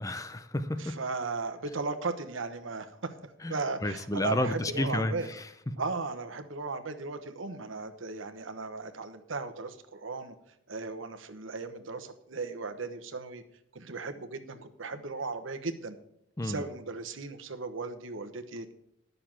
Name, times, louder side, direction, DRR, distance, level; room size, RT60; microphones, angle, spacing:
voice 1, 0.0-1.0 3.4-3.5 3.8-5.8 16.4-16.7, left 1 dB, 15° left, 11 dB, 0.5 m, -31 dB
voice 2, 0.8-3.1 3.5-5.3 5.8-10.3 10.7-13.4 13.7-16.0 16.4-18.7, right 3 dB, 80° right, 9 dB, 1.1 m, -36 dB
11.0 x 6.7 x 7.5 m, 0.75 s
head